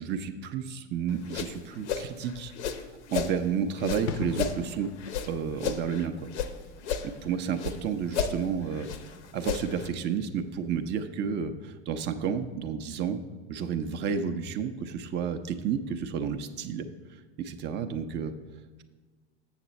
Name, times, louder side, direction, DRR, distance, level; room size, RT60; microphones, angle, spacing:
voice 1, 0.0-2.5 3.1-4.9 5.3-6.1 7.0-8.9 9.3-13.2 13.5-16.9 17.4-18.3, right 7 dB, 30° right, 7 dB, 0.6 m, -31 dB
sound 1, 1.1-3.4 3.8-6.5 6.8-7.8 8.1-9.9, left 7 dB, 75° left, 0.8 m, -33 dB
sound 2, 4.1-10.6 10.8-11.0, left 6 dB, 40° left, 0.6 m, -43 dB
7.2 x 6.9 x 4.1 m, 1.4 s
hypercardioid pair, 95°, 34 cm